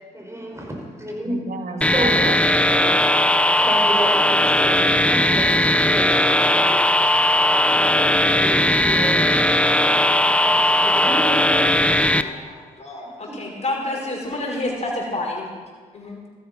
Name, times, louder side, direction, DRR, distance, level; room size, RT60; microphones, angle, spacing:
voice 1, 0.1-1.4 1.9-2.2 3.6-7.3 7.6-9.3 10.2-12.4 13.0-13.4, right 1 dB, 15° right, -1 dB, 5.7 m, -32 dB
voice 2, 1.2-3.7, right 4 dB, 60° right, 4 dB, 2.0 m, -33 dB
sound 1, 1.8-12.2, left 1 dB, 5° left, 0.8 m, -18 dB
voice 3, 12.1-15.5 15.9-16.2, left 2 dB, 40° left, -2 dB, 5.6 m, -29 dB
14.0 x 13.0 x 5.6 m, 1.5 s
supercardioid pair, 45°, 17 cm